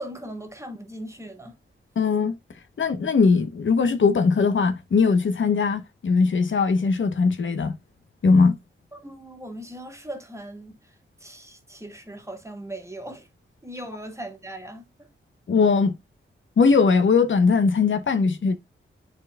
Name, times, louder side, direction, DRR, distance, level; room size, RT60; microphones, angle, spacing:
voice 1, 0.0-1.6 8.9-10.9 11.2-13.3 13.6-15.1, right 1 dB, 15° right, 1.9 m, -39 dB
voice 2, 2.0-2.3 2.8-7.8 8.2-8.6 15.5-16.0 16.6-18.5, left 4 dB, 65° left, 0.9 m, -20 dB
10.5 x 4.4 x 2.2 m
cardioid pair, 70°, 21 cm